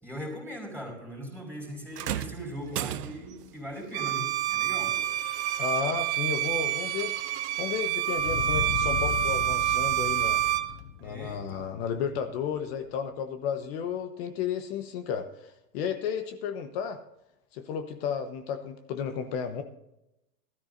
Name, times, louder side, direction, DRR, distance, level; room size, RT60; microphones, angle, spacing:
voice 1, 0.0-5.0 11.0-11.6, equal, 5° left, -1 dB, 4.8 m, -40 dB
sound 1, 1.9-3.5 4.9-5.1 6.0-6.1, right 11 dB, 90° right, 0.7 m, -35 dB
Bowed string instrument, 3.9-10.7, right 11 dB, 45° right, 0.9 m, -28 dB
voice 2, 5.6-7.1 7.6-10.4 11.0-17.0 17.5-19.6, left 7 dB, 40° left, 8 dB, 1.2 m, -33 dB
sound 2, 8.2-12.8, left 11 dB, 80° left, 0.7 m, -36 dB
19.5 x 13.0 x 2.6 m, 0.87 s
hypercardioid pair, 135°, 46 cm